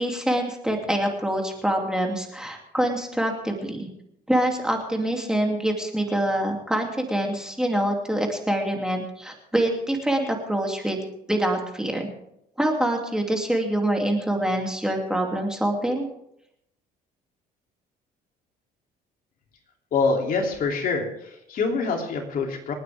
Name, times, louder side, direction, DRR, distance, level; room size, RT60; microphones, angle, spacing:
voice 1, 0.0-3.9 4.3-11.0 11.3-12.1 12.6-16.1, right 1 dB, 5° right, 1 dB, 2.8 m, -25 dB
voice 2, 19.9-22.7, left 4 dB, 55° left, 2 dB, 3.1 m, -25 dB
28.0 x 9.3 x 3.6 m, 0.78 s
cardioid pair, 110°, 17 cm